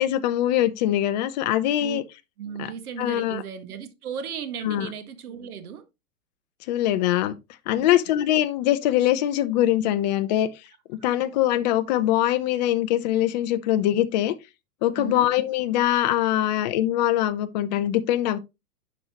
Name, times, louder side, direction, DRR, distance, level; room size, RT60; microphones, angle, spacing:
voice 1, 0.0-2.0 2.6-2.7 3.0-3.4 4.6-4.9 6.7-7.4 7.7-10.5 10.9-14.3 14.8-18.4, left 13 dB, 30° left, 0.6 m, -23 dB
voice 2, 2.4-5.8 7.7-8.0 15.0-15.3, right 8 dB, 65° right, 1.8 m, -35 dB
10.5 x 5.2 x 3.0 m
hypercardioid pair, 145°, 47 cm